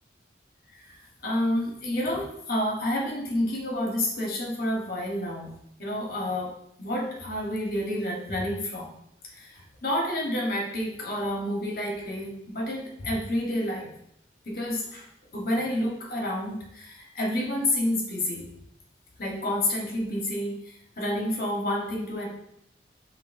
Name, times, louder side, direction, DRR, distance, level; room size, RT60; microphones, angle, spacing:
voice 1, 1.2-5.5 5.8-6.5 6.8-8.9 9.3-13.9 14.4-18.5 19.2-22.3, left 1 dB, 50° left, -2 dB, 1.1 m, -29 dB
6.0 x 2.6 x 2.6 m, 0.76 s
head